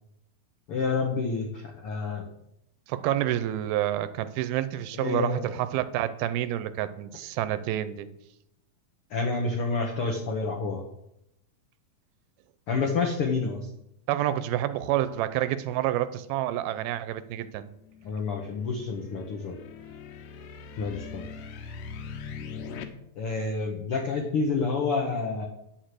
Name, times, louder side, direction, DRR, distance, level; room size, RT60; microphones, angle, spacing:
voice 1, 0.7-2.2 4.9-5.5 9.1-10.8 12.7-13.7 18.0-19.5 20.8-21.3 23.2-25.5, left 4 dB, 90° left, 2 dB, 1.2 m, -28 dB
voice 2, 2.9-8.1 14.1-17.7, right 13 dB, 85° right, 13 dB, 2.5 m, -28 dB
sound 1, 17.9-22.8, left 5 dB, 70° left, 2.3 m, -41 dB
9.9 x 6.6 x 7.6 m, 0.80 s
omnidirectional pair, 4.4 m